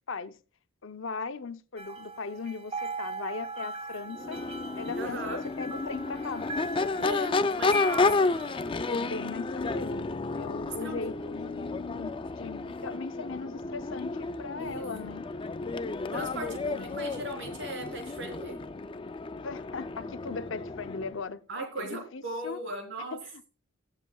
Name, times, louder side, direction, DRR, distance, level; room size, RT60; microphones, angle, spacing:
voice 1, 0.8-4.4 4.7-6.5 8.9-10.1 10.4-15.2 16.1-17.1 19.4-21.4 21.8-22.6 23.1-23.2, left 4 dB, 65° left, 0.7 m, -39 dB
sound 1, 1.8-8.9, right 2 dB, 30° right, 1.2 m, -39 dB
Crowd / Race car auto racing / Accelerating revving vroom, 4.1-21.2, left 3 dB, 25° left, 0.4 m, -32 dB
voice 2, 5.0-5.4 7.0-8.3 10.8-11.0 14.6-14.8 16.1-18.6 21.5-23.2, right 1 dB, 60° right, 3.8 m, -37 dB
21.5 x 7.4 x 2.3 m
head